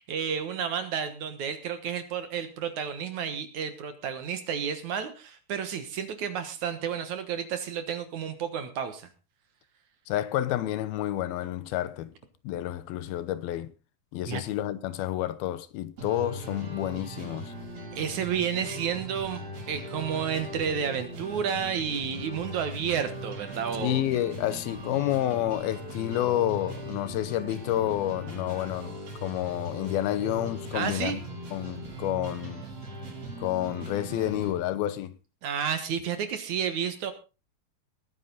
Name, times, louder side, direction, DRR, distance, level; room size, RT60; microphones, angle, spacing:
voice 1, 0.0-9.1 14.3-14.4 17.9-19.4 19.7-24.1 30.7-31.2 35.4-37.1, right 7 dB, 60° right, 2.4 m, -31 dB
voice 2, 10.1-12.1 12.4-13.7 14.1-17.5 23.8-31.2 31.5-32.6 33.4-35.2, left 13 dB, 80° left, 2.8 m, -29 dB
sound 1, 16.0-34.5, right 1 dB, 45° right, 7.4 m, -40 dB
20.0 x 9.4 x 4.0 m
omnidirectional pair, 4.3 m